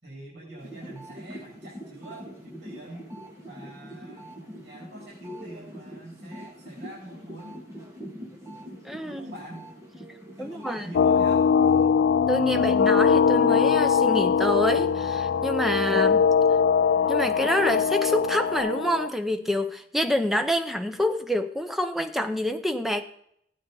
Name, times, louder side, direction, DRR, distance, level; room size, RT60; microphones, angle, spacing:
voice 1, 0.0-3.0 3.5-7.6 9.0-9.7 10.4-11.5, equal, 80° right, -5 dB, 4.6 m, -44 dB
sound 1, 0.6-11.9 12.2-18.6, equal, 15° right, 2.0 m, -45 dB
voice 2, 8.8-9.3 10.4-10.9 12.3-16.3 17.1-23.0, equal, ahead, 7 dB, 0.6 m, -27 dB
sound 2, 10.9-19.1, left 6 dB, 90° left, 0.3 m, -21 dB
15.5 x 9.0 x 3.9 m, 0.70 s
head